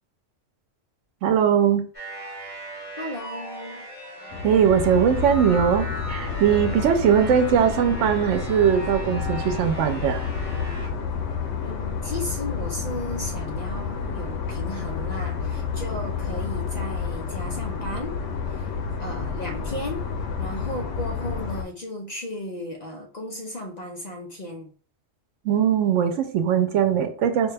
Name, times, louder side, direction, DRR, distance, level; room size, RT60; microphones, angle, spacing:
voice 1, 1.2-1.9 4.4-10.2 25.4-27.5, right 8 dB, 90° right, 0.9 m, -20 dB
sound 1, 1.9-10.9, right 1 dB, 25° left, 1.6 m, -38 dB
voice 2, 3.0-3.9 11.6-18.2 18.5-18.7 19.0-20.1 20.4-24.7, left 1 dB, 50° left, 0.5 m, -35 dB
sound 2, 4.3-21.6, left 5 dB, 90° left, 1.0 m, -30 dB
4.8 x 2.2 x 3.3 m
omnidirectional pair, 1.2 m